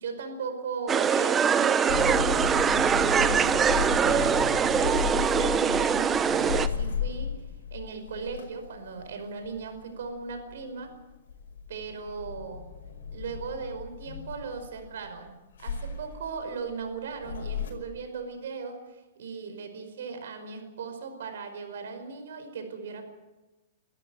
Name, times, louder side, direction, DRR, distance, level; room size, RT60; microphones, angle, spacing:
voice 1, 0.0-4.4 4.8-7.4 7.7-10.9 11.7-12.7 13.1-15.3 15.6-23.1, right 5 dB, 75° right, 7 dB, 5.2 m, -38 dB
sound 1, 0.9-6.7, right 7 dB, 15° right, 0.8 m, -23 dB
sound 2, 1.9-11.0 11.3-15.1 15.6-17.7, left 6 dB, 80° left, 5.5 m, -34 dB
24.0 x 13.5 x 9.0 m, 1.1 s
hypercardioid pair, 145°, 0 cm